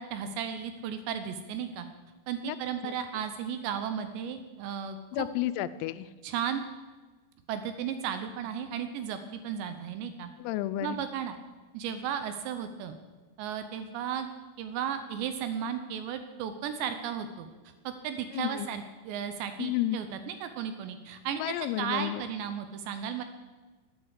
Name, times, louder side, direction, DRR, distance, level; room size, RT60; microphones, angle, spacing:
voice 1, 0.0-1.9 2.3-5.3 6.2-6.6 7.5-10.3 10.8-11.4 11.7-13.0 13.4-14.3 14.6-17.5 17.8-23.2, right 8 dB, 80° right, 9 dB, 2.6 m, -35 dB
voice 2, 5.1-6.1 10.4-11.0 18.3-18.7 19.6-20.0 21.4-22.2, left 14 dB, 90° left, 13 dB, 3.3 m, -31 dB
12.5 x 10.5 x 8.1 m, 1.3 s
omnidirectional pair, 5.9 m